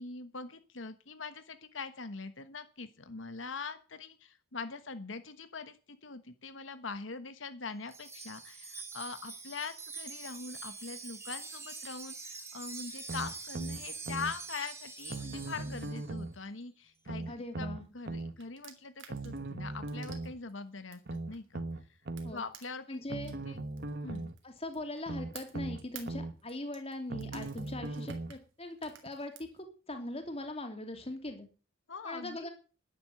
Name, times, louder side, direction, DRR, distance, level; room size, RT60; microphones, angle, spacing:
voice 1, 0.0-21.0 21.3-21.6 22.3-23.0 23.4-23.6 24.0-24.3 31.9-32.5, left 4 dB, 80° left, 10 dB, 1.3 m, -43 dB
Wind chime, 7.9-16.1, right 4 dB, 15° right, 2.1 m, -45 dB
sound 1, 13.1-14.3 15.1-16.4 17.1-18.3 19.1-20.3 21.1-22.3 23.1-24.3 25.1-26.3 27.1-28.4 29.1-29.2, right 2 dB, 55° right, 1.2 m, -39 dB
voice 2, 17.3-17.8 22.2-22.4 22.9-23.3 24.4-31.5 32.0-32.5, left 1 dB, 30° left, 6 dB, 2.9 m, -41 dB
sound 2, 18.0-21.7 22.2-25.0 25.3-29.6, right 9 dB, 85° right, 3.1 m, -53 dB
11.5 x 11.0 x 7.9 m, 0.37 s
head